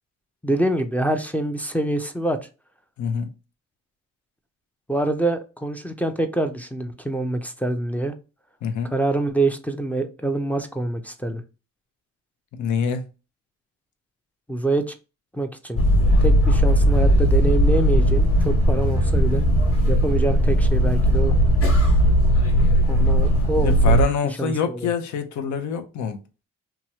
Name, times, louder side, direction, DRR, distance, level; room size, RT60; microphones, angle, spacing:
voice 1, 0.4-2.4 4.9-8.1 8.9-11.4 14.5-14.9 15.3-15.8 16.2-19.4 19.9-21.4 22.9-24.0 24.4-24.9, right 2 dB, 5° left, 0.4 m, -25 dB
voice 2, 3.0-3.3 8.6-8.9 12.6-13.0 23.6-26.2, left 6 dB, 70° left, 0.7 m, -25 dB
sound 1, 15.8-24.0, equal, 50° left, 1.2 m, -18 dB
2.9 x 2.3 x 2.8 m
cardioid pair, 90°, 30 cm